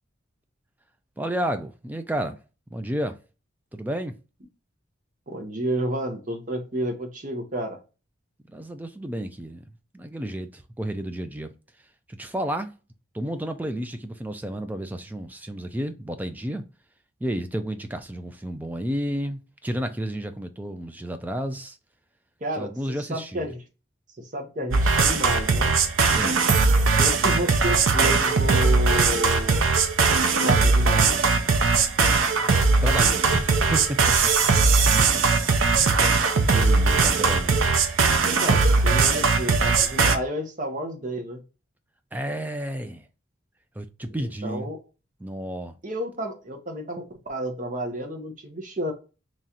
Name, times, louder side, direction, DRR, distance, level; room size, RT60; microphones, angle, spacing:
voice 1, 1.2-2.4 2.7-3.2 3.7-4.1 8.5-9.6 9.9-11.5 12.1-12.7 13.1-16.6 17.2-21.8 22.6-23.5 26.1-26.4 32.8-34.0 34.4-34.5 34.8-35.2 35.7-37.7 42.1-43.1 43.8-44.7 45.2-45.8, right 1 dB, 10° right, 0.3 m, -31 dB
voice 2, 5.3-7.8 22.4-23.6 24.2-25.7 27.0-29.6 30.4-31.2 38.2-41.4 44.2-44.8 45.8-48.9, right 1 dB, 40° right, 0.8 m, -31 dB
sound 1, 24.7-40.2, right 4 dB, 80° right, 0.6 m, -20 dB
3.1 x 2.8 x 3.7 m
head